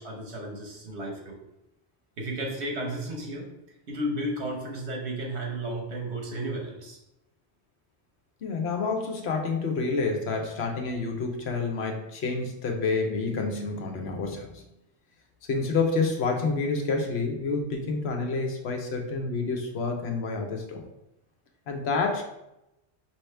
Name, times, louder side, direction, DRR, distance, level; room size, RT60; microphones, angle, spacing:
voice 1, 0.0-1.4 2.2-3.5 3.9-7.0, right 1 dB, 75° right, 0 dB, 1.4 m, -33 dB
voice 2, 8.4-14.6 15.5-20.8 21.7-22.2, left 4 dB, 75° left, 3 dB, 1.0 m, -28 dB
5.4 x 2.9 x 3.3 m, 0.87 s
omnidirectional pair, 1.1 m